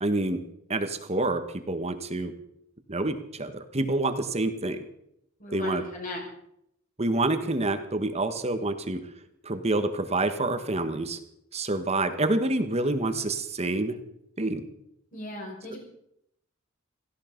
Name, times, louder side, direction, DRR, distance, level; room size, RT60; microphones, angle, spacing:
voice 1, 0.0-2.3 2.9-4.9 5.5-5.8 7.0-9.0 9.4-11.2 11.5-14.0 14.4-14.6, right 2 dB, 30° right, 9 dB, 1.5 m, -27 dB
voice 2, 5.4-6.2 15.1-15.8, left 1 dB, 40° left, -1 dB, 6.5 m, -37 dB
17.5 x 15.5 x 5.3 m, 0.77 s
head